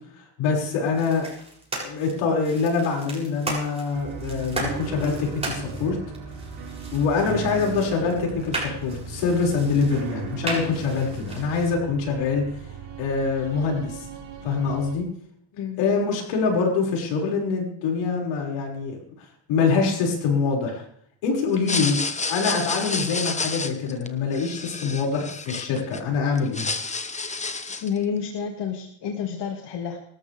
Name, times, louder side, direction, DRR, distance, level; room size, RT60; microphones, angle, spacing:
voice 1, 0.1-1.3 1.7-6.0 6.9-12.5 13.0-14.0 14.4-15.1 15.8-19.0 19.5-20.8 21.2-22.0 22.3-26.7, left 4 dB, 80° left, 0 dB, 6.2 m, -24 dB
sound 1, 0.9-11.7, right 2 dB, 10° right, 7.5 m, -36 dB
sound 2, 3.9-15.0, right 6 dB, 65° right, 5.8 m, -37 dB
sound 3, 21.5-26.0 26.3-28.0, left 3 dB, 15° left, 1.0 m, -30 dB
voice 2, 27.7-30.0, left 7 dB, 55° left, 1 dB, 2.3 m, -29 dB
25.5 x 13.5 x 3.5 m, 0.66 s
cardioid pair, 125°, 49 cm